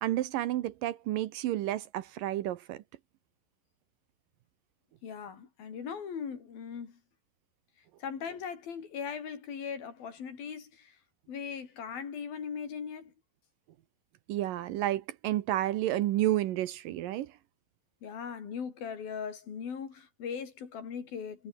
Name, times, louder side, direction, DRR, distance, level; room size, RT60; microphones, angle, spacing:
voice 1, 0.0-2.8 14.3-17.3, right 14 dB, 75° right, 2.4 m, -31 dB
voice 2, 5.0-7.0 8.0-11.0 11.3-13.1 18.0-21.5, left 6 dB, 70° left, 5.6 m, -39 dB
omnidirectional pair, 4.4 m